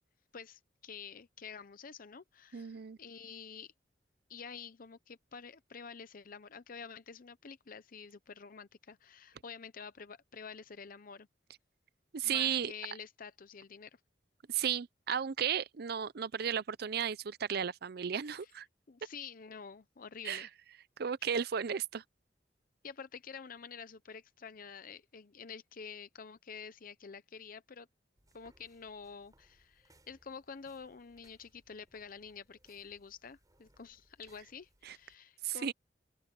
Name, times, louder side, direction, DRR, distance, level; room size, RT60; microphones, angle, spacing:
voice 1, 0.3-3.7 4.3-11.3 12.2-14.0 18.4-18.5 18.9-20.5 21.2-21.4 22.8-27.9 28.3-35.7, left 6 dB, 50° left, 0.7 m, -49 dB
voice 2, 2.5-3.0 12.1-12.7 14.5-18.7 20.2-20.5 21.0-22.0 34.9-35.0 35.4-35.7, right 8 dB, 60° right, 0.5 m, -34 dB
sound 1, 28.2-35.1, right 1 dB, 20° right, 4.4 m, -69 dB
open air
head